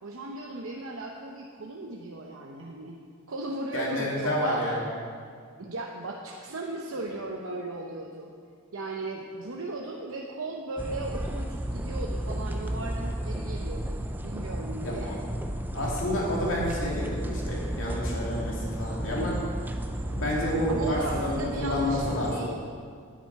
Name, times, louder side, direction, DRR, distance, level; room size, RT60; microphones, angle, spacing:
voice 1, 0.0-3.0 3.3-4.6 5.6-8.3 8.7-15.2 20.7-22.0 22.3-22.6, right 2 dB, 80° right, -1 dB, 0.8 m, -36 dB
voice 2, 3.7-4.8 14.8-15.2 15.7-19.4 20.1-22.5, left 1 dB, 65° left, -4 dB, 2.7 m, -29 dB
sound 1, 10.8-22.4, right 1 dB, 10° right, 0.4 m, -33 dB
10.0 x 9.7 x 4.7 m, 2.1 s
head